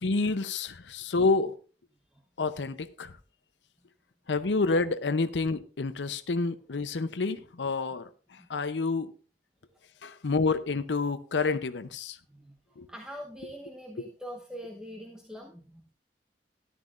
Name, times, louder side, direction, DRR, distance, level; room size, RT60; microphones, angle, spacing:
voice 1, 0.0-1.6 2.4-3.1 4.3-9.1 10.0-12.2 12.8-12.9, left 3 dB, 90° left, 0.7 m, -29 dB
voice 2, 12.9-15.9, equal, 5° right, 0.9 m, -43 dB
13.0 x 11.0 x 2.5 m
head